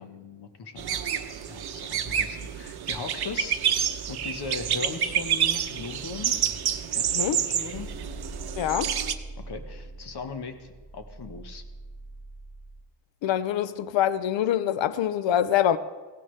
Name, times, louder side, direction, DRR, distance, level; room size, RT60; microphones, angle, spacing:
voice 1, 0.0-3.6 4.1-6.4 6.9-7.9 9.4-11.6, left 4 dB, 60° left, 1.3 m, -39 dB
sound 1, 0.8-9.1, right 9 dB, 60° right, 0.8 m, -28 dB
sound 2, 7.7-12.8, right 2 dB, 10° right, 3.2 m, -42 dB
voice 2, 8.6-8.9 13.2-15.8, left 10 dB, 80° left, 0.6 m, -25 dB
16.0 x 16.0 x 3.3 m
wide cardioid pair, 160°, 45 cm